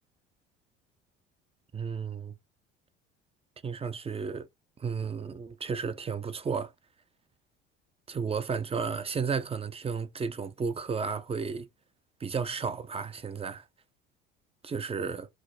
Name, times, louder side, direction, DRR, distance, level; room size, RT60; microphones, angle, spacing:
voice 1, 1.7-2.3 3.6-4.5 4.8-6.7 8.1-11.7 12.2-13.6 14.6-15.3, right 5 dB, 20° right, 0.6 m, -33 dB
4.7 x 2.0 x 2.5 m
hypercardioid pair, 65°, 31 cm